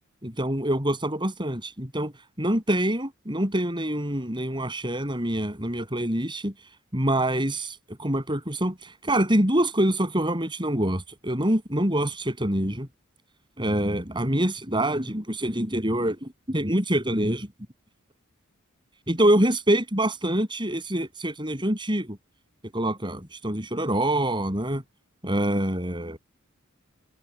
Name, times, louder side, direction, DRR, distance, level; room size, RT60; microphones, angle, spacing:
voice 1, 0.2-2.1 2.4-6.5 6.9-12.9 13.6-17.5 19.1-22.1 22.7-24.8 25.2-26.2, right 1 dB, 25° right, 8.0 m, -25 dB
head